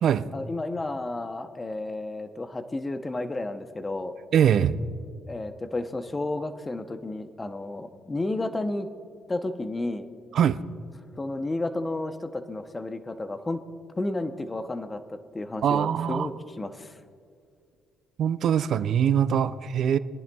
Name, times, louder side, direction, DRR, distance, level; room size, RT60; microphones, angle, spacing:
voice 1, 0.3-4.1 5.3-8.9 9.3-10.1 11.2-13.6 14.0-17.0, left 2 dB, 20° left, 9 dB, 0.7 m, -32 dB
voice 2, 4.3-4.7 10.3-10.6 15.6-16.3 18.2-20.0, right 9 dB, 65° right, 13 dB, 0.4 m, -22 dB
22.5 x 10.5 x 2.3 m, 2.3 s
cardioid pair, 90°, 0 cm